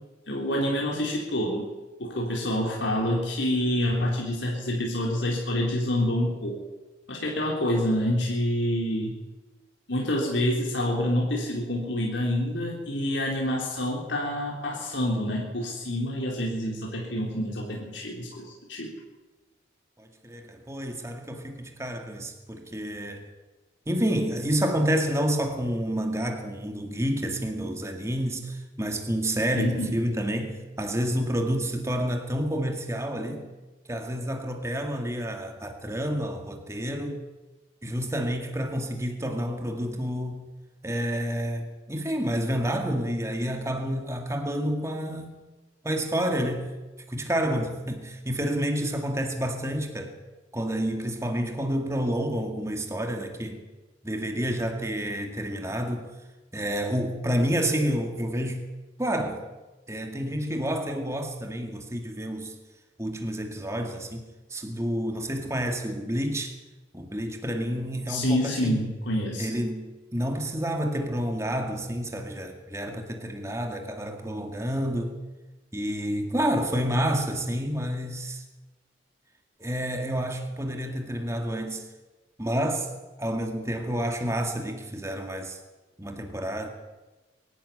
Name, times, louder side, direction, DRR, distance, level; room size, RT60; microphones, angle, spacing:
voice 1, 0.3-1.7 2.0-6.6 7.1-9.2 9.9-18.9 29.6-30.0 68.1-69.5, left 1 dB, 75° left, -2 dB, 3.7 m, -27 dB
voice 2, 20.0-23.2 23.9-33.5 33.9-37.2 37.8-40.5 40.8-45.4 45.8-46.7 47.1-50.1 50.5-53.6 54.0-56.1 56.5-58.7 59.0-59.4 59.9-62.5 63.0-66.5 66.9-68.9 69.4-69.9 70.1-75.2 75.7-78.4 79.6-81.8 82.4-82.9 83.2-85.6 86.0-86.7, equal, 15° right, 4 dB, 2.1 m, -29 dB
22.5 x 12.0 x 9.8 m, 1.2 s
head